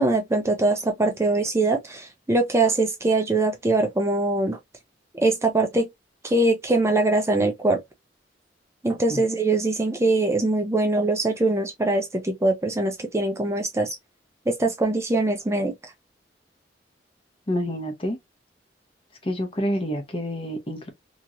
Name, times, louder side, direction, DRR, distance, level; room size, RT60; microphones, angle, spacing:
voice 1, 0.0-4.6 5.1-5.9 6.2-7.8 8.8-14.0 14.5-15.7, right 2 dB, 15° right, 0.4 m, -22 dB
voice 2, 17.5-18.2 19.2-20.9, equal, 30° left, 0.7 m, -28 dB
2.9 x 2.8 x 2.4 m
head